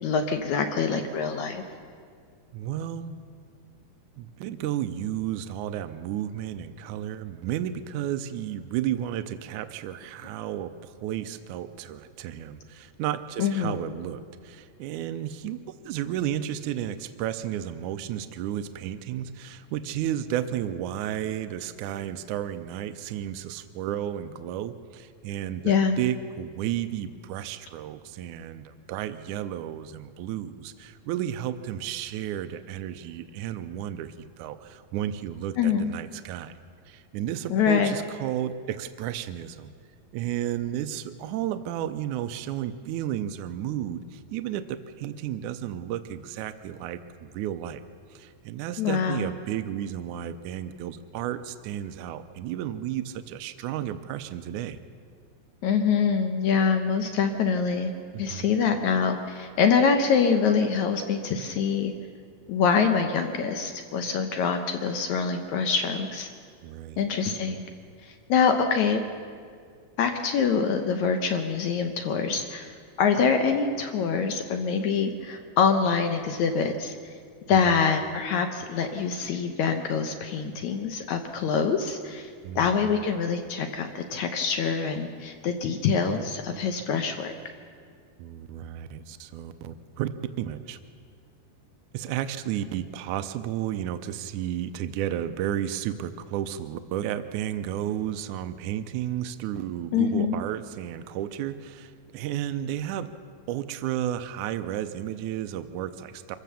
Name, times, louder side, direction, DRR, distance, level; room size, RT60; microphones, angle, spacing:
voice 1, 0.0-1.6 13.4-13.8 25.7-26.0 35.6-35.9 37.5-37.9 48.8-49.2 55.6-57.9 58.2-61.9 62.5-66.3 67.0-67.6 68.1-69.0 70.0-72.7 73.0-76.9 77.5-82.3 82.6-87.3 99.9-100.4, left 6 dB, 70° left, 6 dB, 1.9 m, -25 dB
voice 2, 2.5-3.2 4.2-36.6 36.9-39.7 40.1-47.8 48.1-54.8 58.1-58.5 66.6-67.0 77.5-77.6 82.4-82.9 88.2-90.1 90.4-90.8 91.9-103.1 103.5-106.4, right 11 dB, 90° right, 10 dB, 1.7 m, -32 dB
25.0 x 15.0 x 6.9 m, 2.1 s
omnidirectional pair, 4.3 m